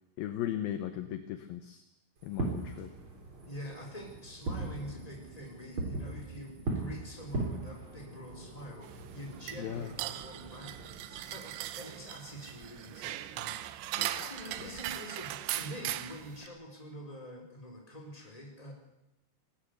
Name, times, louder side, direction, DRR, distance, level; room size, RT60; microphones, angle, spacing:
voice 1, 0.2-1.8 2.2-2.9 9.6-9.9 13.9-14.3 14.6-14.8, left 11 dB, 70° left, 9 dB, 2.3 m, -37 dB
Fireworks, 2.2-11.5, right 2 dB, 30° right, 3.9 m, -40 dB
voice 2, 3.5-14.0 14.3-18.7, equal, 10° left, 0 dB, 4.0 m, -46 dB
sound 1, 8.8-16.5, right 14 dB, 80° right, 3.1 m, -39 dB
19.0 x 18.5 x 8.2 m, 0.86 s
omnidirectional pair, 5.3 m